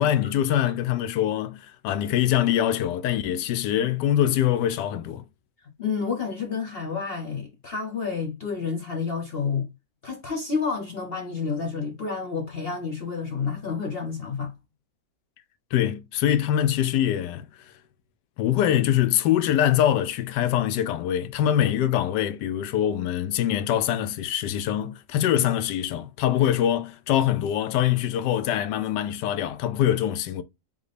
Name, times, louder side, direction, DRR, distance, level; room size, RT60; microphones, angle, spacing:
voice 1, 0.0-5.2 15.7-17.4 18.4-30.4, left 11 dB, 85° left, 1.2 m, -24 dB
voice 2, 5.8-9.7 10.0-14.5, left 5 dB, 45° left, 0.8 m, -30 dB
3.7 x 3.5 x 3.3 m
omnidirectional pair, 1.8 m